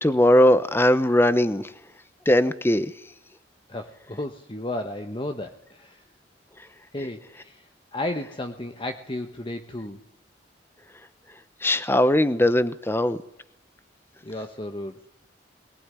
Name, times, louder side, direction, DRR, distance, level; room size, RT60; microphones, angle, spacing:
voice 1, 0.0-1.7 2.3-2.9 11.6-13.2, left 1 dB, 15° left, 13 dB, 1.0 m, -19 dB
voice 2, 3.7-6.0 6.9-10.0 14.2-15.1, left 1 dB, 30° left, 6 dB, 1.2 m, -33 dB
22.5 x 19.0 x 9.8 m, 0.80 s
head